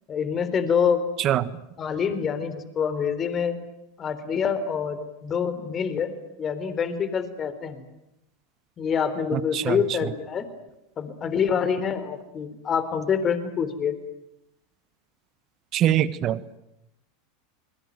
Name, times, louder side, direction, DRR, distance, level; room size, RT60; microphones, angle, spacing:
voice 1, 0.1-1.0 1.8-3.6 4.0-6.1 6.4-7.8 8.8-10.5 11.0-14.0, left 7 dB, 35° left, 12 dB, 3.9 m, -26 dB
voice 2, 1.2-1.5 9.3-9.8 15.7-16.4, right 12 dB, 40° right, 16 dB, 1.5 m, -23 dB
29.5 x 22.0 x 9.3 m, 0.85 s
hypercardioid pair, 95°, 0 cm